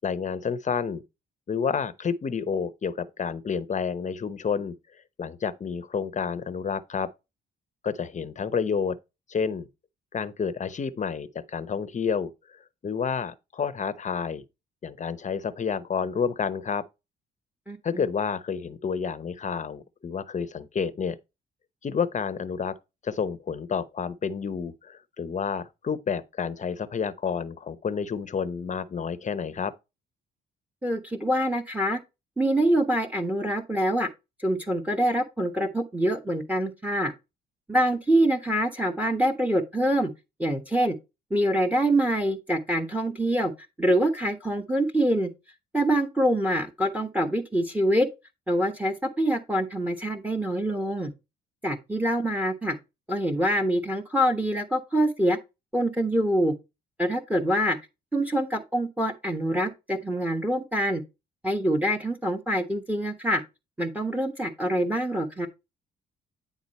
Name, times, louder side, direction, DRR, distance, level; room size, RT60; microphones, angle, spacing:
voice 1, 0.0-1.0 1.5-4.7 5.2-7.1 7.8-9.0 9.3-9.7 10.1-14.4 14.8-16.8 17.8-21.2 21.8-22.7 23.0-29.7, left 6 dB, 40° left, 0.8 m, -29 dB
voice 2, 17.7-18.0 30.8-32.0 32.4-34.1 34.4-37.1 37.7-40.1 40.4-41.0 41.3-43.5 43.8-45.3 45.7-48.1 48.5-51.1 51.6-52.8 53.1-55.4 55.7-56.5 57.0-57.8 58.1-61.0 61.4-63.4 63.8-65.5, right 1 dB, 5° right, 1.2 m, -25 dB
9.6 x 3.8 x 4.2 m
cardioid pair, 90°, 20 cm